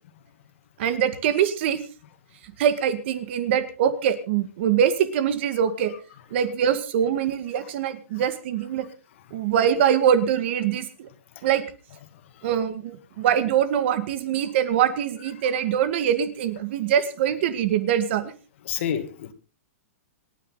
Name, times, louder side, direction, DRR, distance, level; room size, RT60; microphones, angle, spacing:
voice 1, 0.8-1.8 2.4-5.9 6.3-8.9 9.3-11.1 11.4-11.6 12.4-18.3, right 9 dB, 50° right, 11 dB, 2.0 m, -23 dB
voice 2, 18.7-19.3, left 9 dB, 55° left, 9 dB, 2.3 m, -29 dB
26.5 x 10.0 x 4.0 m, 0.37 s
hypercardioid pair, 165°, 8 cm